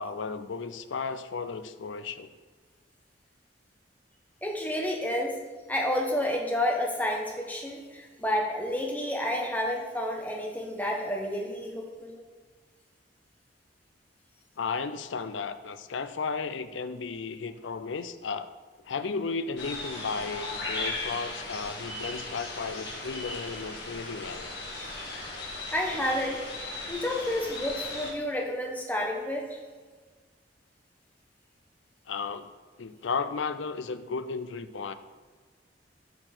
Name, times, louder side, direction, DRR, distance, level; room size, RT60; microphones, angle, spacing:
voice 1, 0.0-2.3 14.6-18.5 18.8-24.5 32.1-32.5 32.8-34.9, left 4 dB, 90° left, 12 dB, 0.5 m, -34 dB
voice 2, 4.4-5.4 5.7-12.2 25.7-26.4 26.9-29.6, left 1 dB, 10° left, 0 dB, 1.1 m, -30 dB
sound 1, 19.6-28.1, left 2 dB, 60° left, 2.0 m, -37 dB
12.5 x 4.4 x 4.4 m, 1.5 s
head